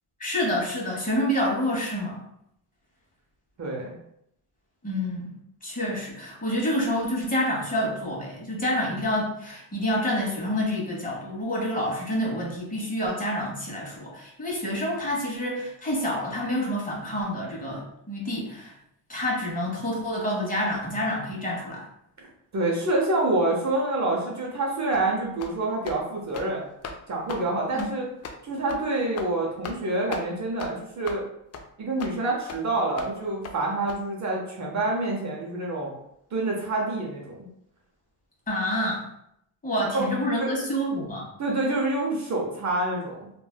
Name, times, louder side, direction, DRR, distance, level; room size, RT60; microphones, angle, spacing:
voice 1, 0.2-2.2 4.8-5.3 5.6-18.7 19.1-21.9 27.7-27.9 38.5-39.0 39.6-41.2, equal, 20° left, -4 dB, 1.3 m, -28 dB
voice 2, 3.6-3.9 22.5-26.7 27.1-28.1 28.4-31.2 31.8-35.9 36.3-37.5 39.9-40.1 40.4-40.5 41.4-43.3, right 2 dB, 40° right, -2 dB, 0.8 m, -27 dB
sound 1, 24.9-25.1 25.4-25.6 25.8-26.0 26.3-26.5 26.8-27.0 27.3-27.4 27.8-27.9 28.2-28.4 28.7-28.8 29.2-29.3 29.6-29.8 30.1-30.3 30.6-30.7 31.0-31.2 31.5-31.6 32.0-32.1 32.5-32.6 33.0-33.1 33.4-33.6 33.9-34.0, left 5 dB, 40° left, 0.4 m, -37 dB
3.2 x 2.5 x 2.3 m, 0.76 s
supercardioid pair, 70°, 42 cm